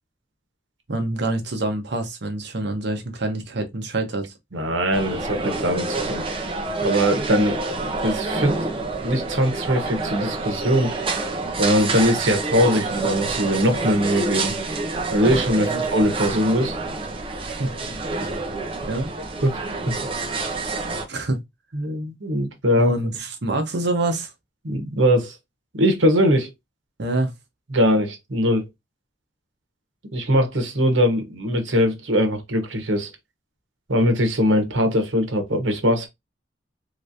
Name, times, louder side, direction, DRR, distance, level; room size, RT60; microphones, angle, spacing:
voice 1, 0.9-4.3 15.7-15.8 17.6-17.7 18.8-19.1 21.1-21.4 22.8-24.3 27.0-27.3, right 2 dB, 65° right, 0.9 m, -26 dB
voice 2, 4.5-6.2 6.8-10.9 11.6-14.5 15.1-16.8 19.4-19.9 21.7-22.9 24.6-25.4 25.7-26.5 27.7-28.6 30.1-33.1 33.9-36.1, equal, 90° right, 1.1 m, -21 dB
sound 1, 4.9-21.1, right 3 dB, 30° right, 0.7 m, -27 dB
3.2 x 3.1 x 2.6 m
head